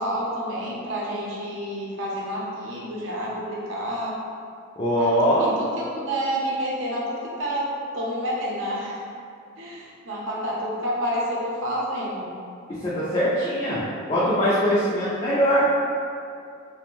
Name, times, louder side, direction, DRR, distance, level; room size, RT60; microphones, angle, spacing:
voice 1, 0.0-4.1 4.9-7.7 7.9-9.0 9.6-12.3, equal, 70° right, -5 dB, 0.6 m, -29 dB
voice 2, 4.8-5.5 12.7-15.7, equal, 25° left, -9 dB, 0.3 m, -22 dB
2.4 x 2.1 x 3.0 m, 2.4 s
head